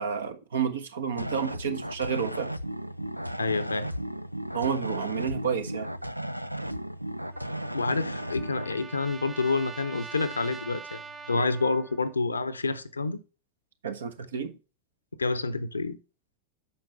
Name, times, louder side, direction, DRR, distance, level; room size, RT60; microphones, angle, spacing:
voice 1, 0.0-2.5 4.5-5.9 11.3-11.4 13.8-14.5, right 7 dB, 65° right, 1.2 m, -30 dB
sound 1, 1.1-8.7, right 1 dB, 90° right, 0.4 m, -35 dB
voice 2, 3.4-3.9 7.7-11.0 11.3-13.2 15.2-16.0, left 3 dB, 80° left, 0.8 m, -28 dB
Trumpet, 7.3-12.1, right 5 dB, 15° right, 1.1 m, -44 dB
8.6 x 5.9 x 3.4 m
figure-of-eight pair, 90°, 0 cm